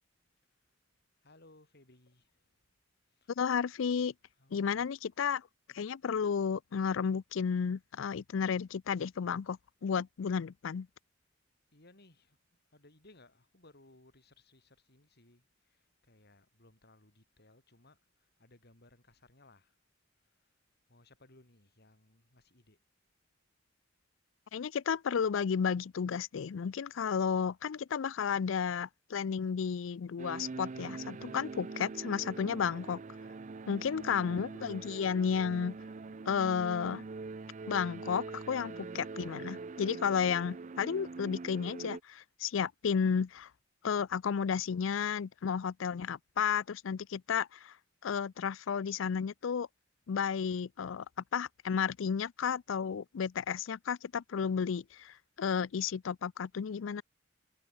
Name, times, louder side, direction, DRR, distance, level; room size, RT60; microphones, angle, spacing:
voice 1, 1.2-2.3 3.2-3.3 4.3-5.0 11.7-12.4 12.7-15.8 16.1-18.0 18.4-19.7 20.9-22.8 33.8-34.3, left 2 dB, 55° left, 4.1 m, -62 dB
voice 2, 3.4-4.1 4.5-5.4 5.7-10.9 24.5-33.0 33.7-35.8 36.3-37.0 37.7-43.5 43.8-47.7 48.0-49.7 50.1-51.0 51.3-57.0, left 6 dB, 70° left, 0.4 m, -32 dB
sound 1, 30.2-42.0, right 3 dB, 40° right, 0.5 m, -43 dB
head